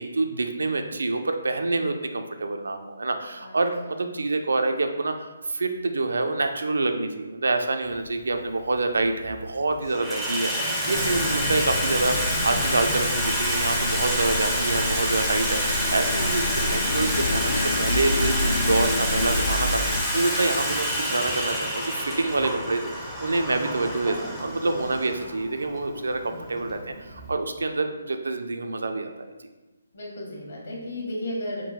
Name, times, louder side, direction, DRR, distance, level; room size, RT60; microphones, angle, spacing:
voice 1, 0.0-29.3, right 3 dB, 85° right, 6 dB, 0.4 m, -27 dB
Water tap faucet / Sink (filling or washing), 8.0-8.1 9.0-9.4 9.7-27.3, equal, ahead, 0.4 m, -28 dB
sound 1, 10.9-20.0, left 2 dB, 80° left, 0.3 m, -29 dB
voice 2, 20.5-20.9 26.2-26.6 29.9-31.6, left 1 dB, 60° left, -3 dB, 1.3 m, -36 dB
3.7 x 2.4 x 4.1 m, 1.1 s
hypercardioid pair, 170°, 0 cm